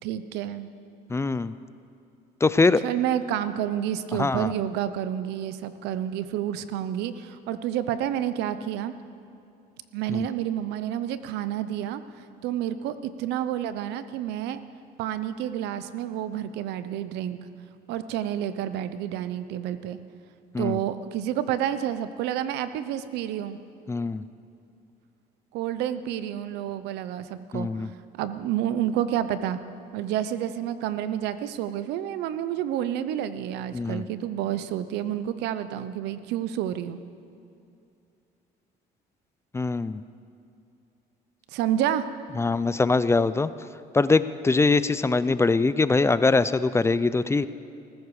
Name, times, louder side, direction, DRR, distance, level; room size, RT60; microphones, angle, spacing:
voice 1, 0.0-0.7 2.8-8.9 9.9-12.0 12.4-14.6 15.0-17.4 17.9-20.0 20.6-23.6 25.5-27.8 28.2-29.6 29.9-37.0 41.5-42.0, right 11 dB, 90° right, 12 dB, 0.8 m, -29 dB
voice 2, 1.1-1.5 2.4-2.8 4.2-4.5 10.1-10.2 20.5-20.8 23.9-24.2 27.5-27.9 33.7-34.0 39.5-40.0 42.4-43.5 43.9-47.5, left 3 dB, 15° left, 15 dB, 0.5 m, -22 dB
19.0 x 14.5 x 4.9 m, 2.6 s
cardioid pair, 110°, 17 cm